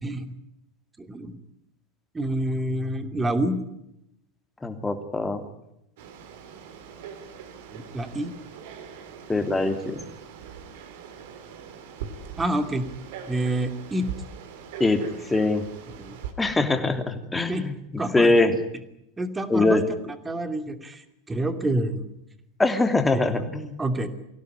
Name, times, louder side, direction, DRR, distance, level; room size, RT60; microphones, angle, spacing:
voice 1, 1.0-1.3 2.1-3.6 7.7-8.3 12.4-12.8 13.3-14.1 16.0-16.2 17.5-17.7 18.0-18.4 19.2-19.8 20.3-21.0 21.3-22.1 23.8-24.1, right 1 dB, 15° right, 8 dB, 2.7 m, -27 dB
voice 2, 4.6-5.4 9.3-10.0 14.8-15.0 15.3-15.6 16.4-18.5 19.5-19.8 22.6-23.8, left 2 dB, 10° left, 6 dB, 3.0 m, -23 dB
Frog, 6.0-16.3, right 7 dB, 60° right, 3.5 m, -41 dB
23.5 x 17.0 x 9.9 m, 0.83 s
figure-of-eight pair, 85°, 0 cm